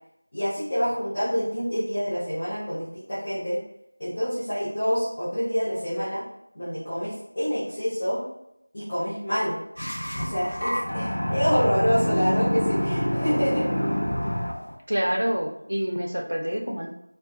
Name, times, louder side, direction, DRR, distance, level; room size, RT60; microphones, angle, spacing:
voice 1, 0.3-3.6 4.0-6.2 6.5-8.2 8.7-9.6 10.2-13.7, equal, 20° left, -14 dB, 0.7 m, -27 dB
sound 1, 9.8-14.7, equal, 60° left, 0.6 m, -26 dB
voice 2, 14.9-16.9, equal, 70° right, 2 dB, 0.4 m, -27 dB
2.8 x 2.2 x 2.4 m, 0.82 s
figure-of-eight pair, 175°, 0 cm